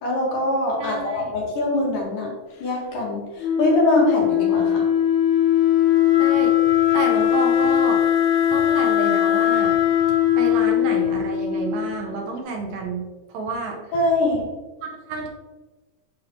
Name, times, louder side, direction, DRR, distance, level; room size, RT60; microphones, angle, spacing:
voice 1, 0.0-2.3 2.6-4.8 13.9-14.5, left 1 dB, 60° left, -3 dB, 3.2 m, -23 dB
voice 2, 0.8-1.3 6.2-6.6 6.9-8.0 8.5-9.7 10.4-13.0 13.3-13.9 14.8-15.3, right 4 dB, 70° right, 1 dB, 2.4 m, -30 dB
Wind instrument woodwind instrument, 3.4-12.1, left 10 dB, 80° left, 2.6 m, -19 dB
7.3 x 7.0 x 3.1 m, 1.2 s
omnidirectional pair, 4.3 m